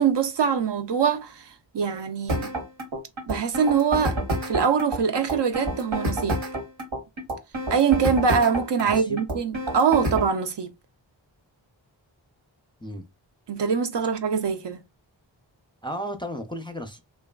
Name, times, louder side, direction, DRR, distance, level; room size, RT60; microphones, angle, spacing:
voice 1, 0.0-2.5 3.3-4.2 4.4-6.4 7.7-10.7 13.5-14.8, right 6 dB, 65° right, 0.5 m, -23 dB
sound 1, 2.3-10.3, right 1 dB, 85° right, 1.1 m, -29 dB
voice 2, 8.8-9.2 12.8-13.0 15.8-17.0, equal, 10° left, 0.4 m, -34 dB
3.1 x 2.3 x 2.2 m
wide cardioid pair, 45°, 46 cm